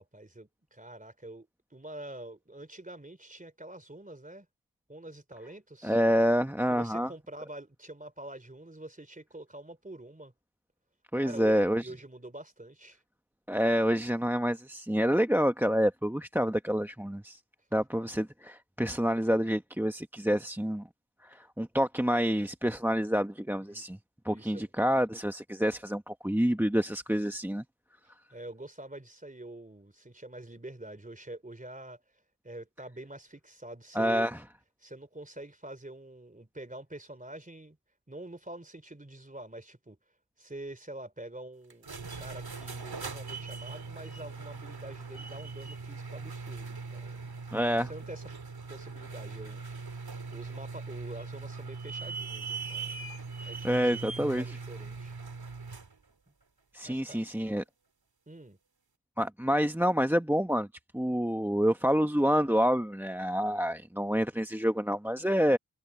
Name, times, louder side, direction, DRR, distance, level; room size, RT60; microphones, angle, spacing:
voice 1, 0.0-4.5 4.9-6.0 6.7-10.3 11.1-13.0 23.7-23.8 24.3-24.6 28.3-32.0 32.4-34.3 34.8-37.8 38.1-40.0 40.4-47.4 47.9-48.3 48.7-49.6 50.3-53.1 53.4-55.1 56.8-57.2 58.3-58.6, right 1 dB, 20° right, 3.3 m, -46 dB
voice 2, 5.8-7.1 11.1-11.9 13.5-17.4 17.7-20.8 21.2-24.0 24.2-27.6 33.9-34.4 47.5-47.9 53.6-54.6 56.7-57.6 59.2-60.7 60.9-65.6, equal, 5° right, 1.1 m, -27 dB
sound 1, 41.7-55.9, right 4 dB, 80° right, 2.9 m, -40 dB
wide cardioid pair, 60°, 37 cm